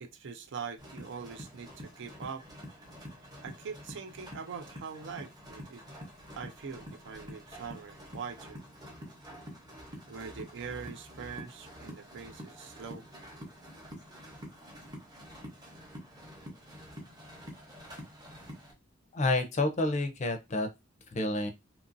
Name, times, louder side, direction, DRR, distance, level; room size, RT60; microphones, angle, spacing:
voice 1, 0.0-2.4 3.4-5.8 6.4-8.6 10.1-13.1, right 6 dB, 60° right, 0.4 m, -43 dB
sound 1, 0.8-18.7, equal, 20° right, 0.8 m, -48 dB
voice 2, 19.1-20.7 21.1-21.5, left 2 dB, 35° left, 0.5 m, -29 dB
2.7 x 2.5 x 2.5 m
head